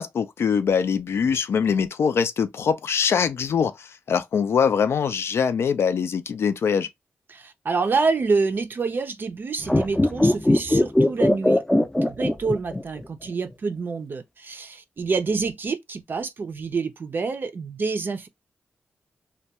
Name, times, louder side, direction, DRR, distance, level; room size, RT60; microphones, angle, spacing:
voice 1, 0.0-6.9, left 6 dB, 75° left, 0.4 m, -23 dB
voice 2, 7.3-18.3, right 4 dB, 50° right, 0.4 m, -27 dB
sound 1, 9.6-13.0 13.3-13.4, left 1 dB, 15° left, 0.4 m, -20 dB
2.2 x 2.2 x 2.7 m
cardioid pair, 75°, 4 cm